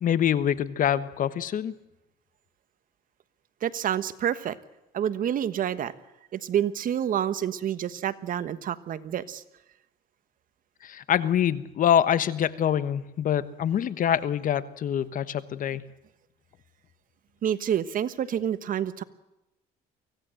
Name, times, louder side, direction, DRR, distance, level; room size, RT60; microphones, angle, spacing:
voice 1, 0.0-1.7 10.8-15.8, left 9 dB, 55° left, 15 dB, 1.2 m, -25 dB
voice 2, 3.6-4.6 4.9-5.9 6.3-9.4 17.4-19.0, right 9 dB, 55° right, 13 dB, 1.3 m, -28 dB
24.5 x 16.5 x 7.8 m, 0.93 s
cardioid pair, 110°, 17 cm